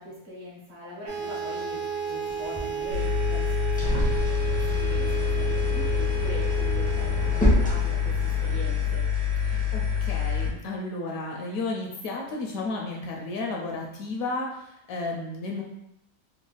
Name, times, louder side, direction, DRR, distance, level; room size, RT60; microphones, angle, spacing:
voice 1, 0.0-9.0, left 1 dB, 50° right, -5 dB, 1.1 m, -42 dB
sound 1, 1.1-8.8, right 8 dB, 70° right, 1.1 m, -33 dB
sound 2, 2.3-8.6, equal, 10° left, 0.5 m, -30 dB
sound 3, 2.9-10.5, left 7 dB, 85° right, 1.4 m, -26 dB
voice 2, 9.4-15.6, left 2 dB, 70° left, 0 dB, 0.9 m, -33 dB
3.3 x 2.1 x 3.8 m, 0.81 s
omnidirectional pair, 1.6 m